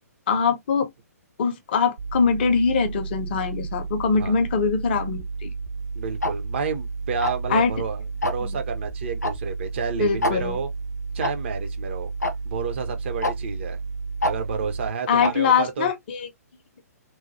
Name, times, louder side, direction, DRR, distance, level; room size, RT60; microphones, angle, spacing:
voice 1, 0.3-0.9 1.4-5.5 7.5-7.7 8.4-8.6 10.0-10.6 15.1-16.3, left 5 dB, 35° left, 0.5 m, -23 dB
sound 1, 2.0-14.9, right 4 dB, 70° right, 0.9 m, -32 dB
voice 2, 6.0-10.7 11.1-12.1 12.5-13.8 14.2-15.9, right 5 dB, 45° right, 0.6 m, -30 dB
Tick-tock, 6.2-6.3 7.2-7.5 8.2-8.5 9.2-9.3 9.6-9.7 10.2-10.3 11.2-11.3 12.2-12.3 13.2-13.3 14.2-14.3 15.2-15.3, left 1 dB, 80° left, 0.6 m, -24 dB
3.0 x 2.2 x 2.6 m
figure-of-eight pair, 125°, 9 cm